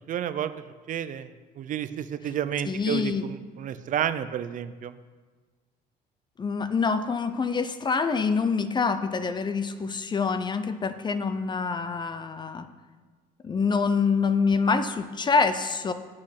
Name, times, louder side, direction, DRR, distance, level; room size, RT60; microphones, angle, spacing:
voice 1, 0.1-0.5 0.9-1.3 1.6-4.9, right 9 dB, 50° right, 13 dB, 0.5 m, -30 dB
voice 2, 2.6-3.2 6.4-12.7 13.4-15.9, left 5 dB, 25° left, 11 dB, 0.6 m, -26 dB
8.3 x 6.4 x 5.8 m, 1.4 s
cardioid pair, 110°, 17 cm